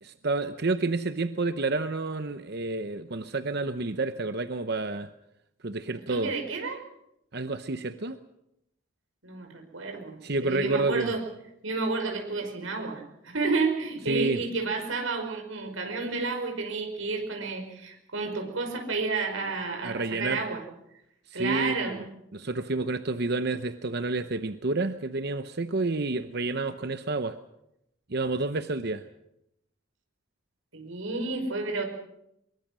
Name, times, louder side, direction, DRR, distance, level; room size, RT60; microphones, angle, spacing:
voice 1, 0.0-5.1 5.6-6.3 7.3-8.2 10.2-11.1 14.1-14.4 19.8-20.4 21.3-22.0 22.3-27.4 28.1-29.1, right 3 dB, 50° right, 10 dB, 0.8 m, -29 dB
voice 2, 6.1-6.8 9.2-10.1 10.4-11.2 11.6-20.6 21.3-22.0 30.7-31.8, right 3 dB, 75° right, 3 dB, 5.5 m, -31 dB
23.5 x 22.5 x 6.3 m, 0.82 s
head